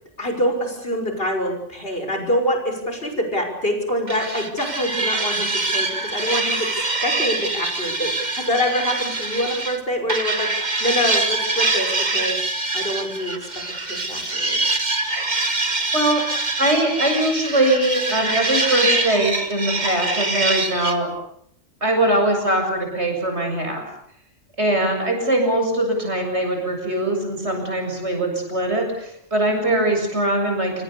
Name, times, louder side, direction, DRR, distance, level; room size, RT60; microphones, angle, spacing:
voice 1, 0.2-12.4 12.7-13.3 13.8-14.6, equal, 50° left, 4 dB, 6.1 m, -25 dB
sound 1, 4.1-9.8 10.1-21.0, right 2 dB, 35° right, 2.2 m, -24 dB
voice 2, 16.6-21.1 21.8-23.8 24.6-30.8, right 1 dB, 60° right, 3 dB, 7.7 m, -21 dB
27.0 x 25.0 x 6.9 m, 0.71 s
omnidirectional pair, 1.3 m